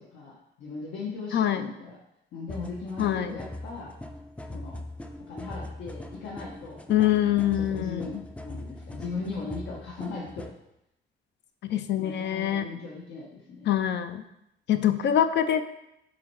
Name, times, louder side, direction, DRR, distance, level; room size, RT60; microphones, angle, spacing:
voice 1, 0.0-2.0 2.3-3.9 4.5-4.8 5.3-6.8 7.1-8.2 8.4-10.5 12.0-13.7, left 4 dB, 80° left, -5 dB, 1.4 m, -38 dB
voice 2, 1.3-1.7 3.0-3.3 6.9-8.2 11.6-12.7 13.7-14.2 14.7-15.6, left 10 dB, 60° left, 9 dB, 0.5 m, -24 dB
sound 1, 2.5-10.6, left 1 dB, 5° left, 0.4 m, -41 dB
7.2 x 4.4 x 4.7 m, 0.83 s
cardioid pair, 170°, 20 cm